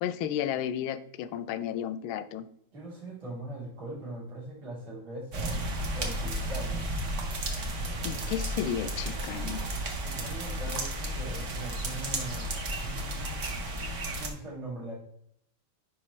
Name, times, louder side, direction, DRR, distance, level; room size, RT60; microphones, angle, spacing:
voice 1, 0.0-2.5 8.0-9.6, left 10 dB, 85° left, 14 dB, 1.4 m, -33 dB
voice 2, 2.7-5.6 5.9-6.9 10.0-13.5 14.2-14.9, right 1 dB, 85° right, -6 dB, 4.2 m, -41 dB
sound 1, 5.3-14.3, right 1 dB, 45° right, 1.1 m, -33 dB
9.7 x 4.9 x 3.1 m, 0.70 s
omnidirectional pair, 2.2 m